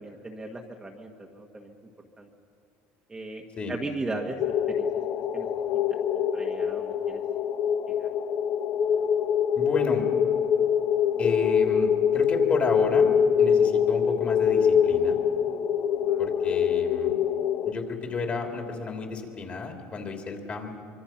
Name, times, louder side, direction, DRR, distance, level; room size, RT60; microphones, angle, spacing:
voice 1, 0.0-1.8 2.2-2.3 3.1-3.4 3.7-4.4 4.8-4.9 5.1-5.5 6.1-7.2 8.0-8.1 16.0-16.2, right 2 dB, 15° right, 1 dB, 1.4 m, -37 dB
sound 1, 4.4-17.7, left 8 dB, 50° left, 1.2 m, -24 dB
voice 2, 9.5-10.1 11.2-15.2 16.2-17.1 17.6-20.7, left 4 dB, 30° left, 3 dB, 3.0 m, -31 dB
25.0 x 24.5 x 5.9 m, 2.4 s
cardioid pair, 140°, 5 cm